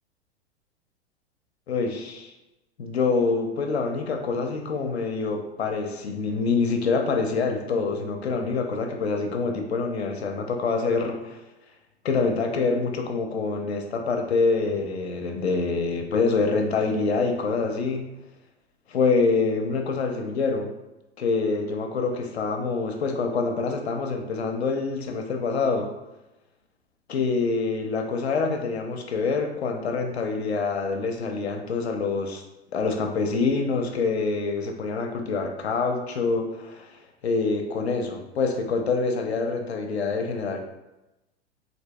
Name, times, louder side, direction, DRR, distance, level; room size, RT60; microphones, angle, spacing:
voice 1, 1.7-2.3 2.8-11.4 12.0-18.0 18.9-20.7 21.2-25.9 27.1-32.4 32.7-40.6, left 4 dB, 70° left, 4 dB, 0.5 m, -26 dB
3.2 x 2.6 x 2.2 m, 0.96 s
figure-of-eight pair, 95°, 34 cm